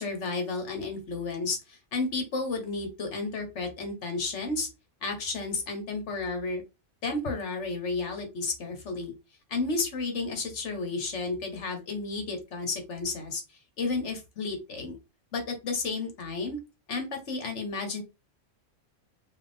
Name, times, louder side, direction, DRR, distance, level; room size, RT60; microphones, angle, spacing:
voice 1, 0.0-4.7 5.0-6.6 7.0-9.1 9.5-13.4 13.8-15.0 15.3-16.6 16.9-18.0, left 3 dB, 70° left, 5 dB, 1.5 m, -32 dB
4.6 x 2.5 x 3.6 m, 0.26 s
omnidirectional pair, 1.3 m